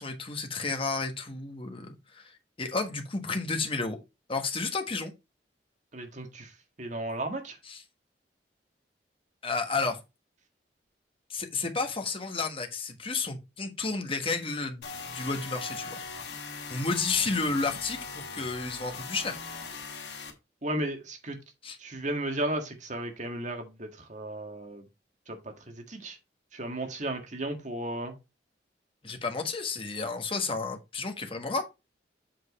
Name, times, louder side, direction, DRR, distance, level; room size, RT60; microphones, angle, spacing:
voice 1, 0.0-2.3 2.6-4.0 4.3-5.1 7.6-7.8 9.4-10.0 11.3-16.0 16.7-19.4 21.6-21.8 29.0-31.6, left 4 dB, 30° left, 1.4 m, -31 dB
voice 2, 5.9-6.5 6.8-7.6 20.6-21.4 21.8-24.8 25.3-25.4 25.8-26.2 26.5-28.1, right 1 dB, 45° right, 1.7 m, -34 dB
sound 1, 14.8-20.3, left 5 dB, 75° left, 2.0 m, -40 dB
7.8 x 4.6 x 4.2 m
head